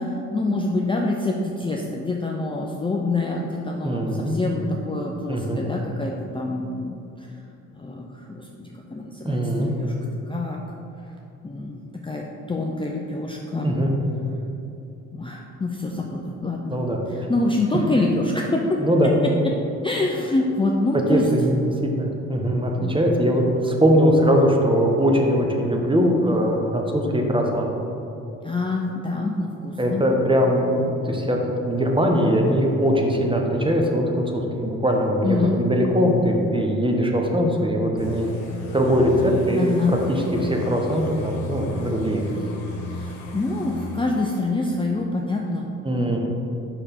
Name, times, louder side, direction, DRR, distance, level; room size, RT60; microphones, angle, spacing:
voice 1, 0.0-7.3 7.7-9.9 10.3-10.6 11.4-13.7 15.1-16.8 17.1-18.8 19.2-19.3 19.8-21.3 22.7-23.0 26.3-26.4 28.4-30.0 35.2-35.6 39.6-40.0 42.9-45.7 46.0-46.2, left 2 dB, 15° left, -1 dB, 0.6 m, -26 dB
voice 2, 3.8-4.4 5.3-5.6 9.2-9.7 13.6-13.9 16.7-17.0 18.8-19.1 21.1-27.7 29.8-31.4 31.6-38.3 38.7-42.2 45.8-46.2, equal, 15° right, 1 dB, 1.1 m, -21 dB
sound 1, 38.0-44.4, left 1 dB, 80° left, 1.1 m, -35 dB
5.5 x 4.9 x 4.4 m, 2.8 s
supercardioid pair, 55°, 35 cm